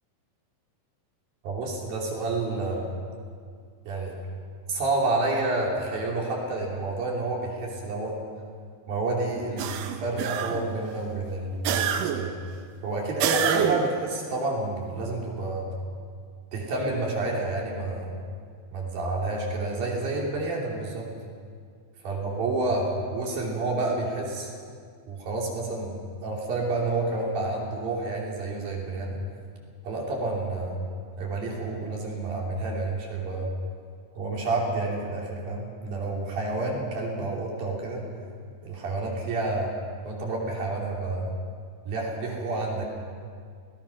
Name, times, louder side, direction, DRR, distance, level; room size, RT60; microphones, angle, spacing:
voice 1, 1.4-2.9 3.9-4.2 4.7-8.2 8.9-12.3 12.8-15.7 16.5-18.1 18.7-21.1 22.0-24.5 25.1-29.2 29.8-30.8 31.2-33.5 34.1-38.0 38.6-39.7 40.0-41.3 41.9-42.8, right 2 dB, 55° right, -2 dB, 4.6 m, -29 dB
sound 1, 9.6-10.8 11.6-12.4 13.2-14.0, right 9 dB, 80° right, 2.0 m, -27 dB
27.5 x 19.0 x 5.9 m, 2.1 s
omnidirectional pair, 5.2 m